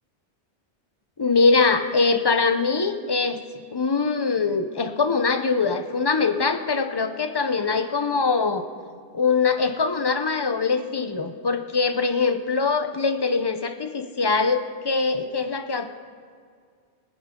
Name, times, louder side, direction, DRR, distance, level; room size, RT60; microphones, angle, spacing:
voice 1, 1.2-3.4 3.7-8.7 9.1-16.0, left 4 dB, 25° left, 8 dB, 0.6 m, -23 dB
23.0 x 10.0 x 3.7 m, 2.1 s
omnidirectional pair, 1.2 m